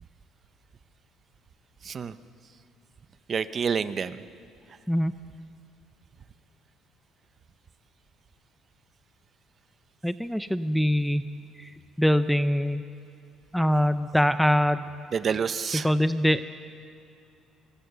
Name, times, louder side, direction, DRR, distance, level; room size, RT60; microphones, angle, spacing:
voice 1, 1.8-2.2 3.3-4.2 15.1-15.9, right 6 dB, 35° right, 12 dB, 0.8 m, -28 dB
voice 2, 10.0-11.3 11.6-11.7 12.0-12.8 13.5-14.9 15.7-16.4, equal, ahead, 11 dB, 0.5 m, -23 dB
25.0 x 24.0 x 6.8 m, 2.6 s
cardioid pair, 140°, 0 cm